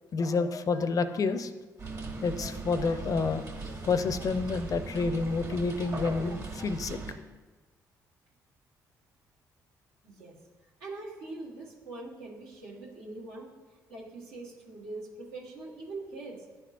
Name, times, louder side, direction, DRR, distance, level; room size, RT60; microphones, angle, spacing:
voice 1, 0.0-1.5 2.2-3.4 3.7-7.0, left 4 dB, 50° left, 11 dB, 0.5 m, -29 dB
sound 1, 1.8-7.1, right 3 dB, 50° right, 1.6 m, -39 dB
voice 2, 10.0-10.3 10.8-13.5 13.9-16.4, right 2 dB, 85° right, -5 dB, 1.5 m, -42 dB
10.5 x 3.5 x 2.5 m, 1.3 s
supercardioid pair, 60°, 8 cm